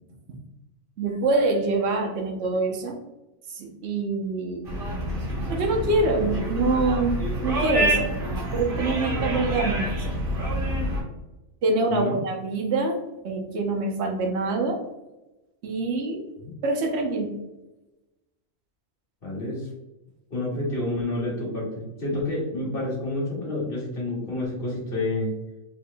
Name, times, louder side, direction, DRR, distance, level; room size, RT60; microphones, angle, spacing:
voice 1, 1.0-2.9 3.5-4.6 5.5-8.1 8.5-9.9 11.6-13.0 13.2-14.8 15.6-16.2 16.6-17.3, right 3 dB, 60° right, 2 dB, 1.0 m, -25 dB
sound 1, 4.7-11.0, right 1 dB, 45° right, 1.4 m, -27 dB
voice 2, 19.2-19.7 20.3-25.3, left 2 dB, 45° left, -5 dB, 1.7 m, -29 dB
4.5 x 3.4 x 2.3 m, 1.0 s
omnidirectional pair, 1.3 m